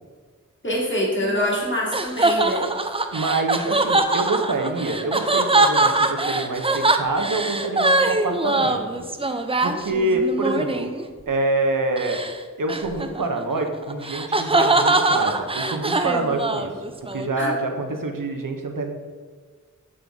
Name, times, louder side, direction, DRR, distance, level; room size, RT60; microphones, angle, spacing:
voice 1, 0.6-2.7 17.4-17.5, left 1 dB, 35° left, -4 dB, 1.7 m, -25 dB
sound 1, 1.2-11.1 12.0-12.3 12.7-17.3, right 2 dB, 20° right, 0.4 m, -22 dB
voice 2, 3.1-9.0 9.6-10.9 11.3-12.2 12.6-16.7 17.0-18.9, right 2 dB, 85° right, 4 dB, 0.7 m, -26 dB
7.6 x 3.8 x 3.4 m, 1.5 s
wide cardioid pair, 40°, 32 cm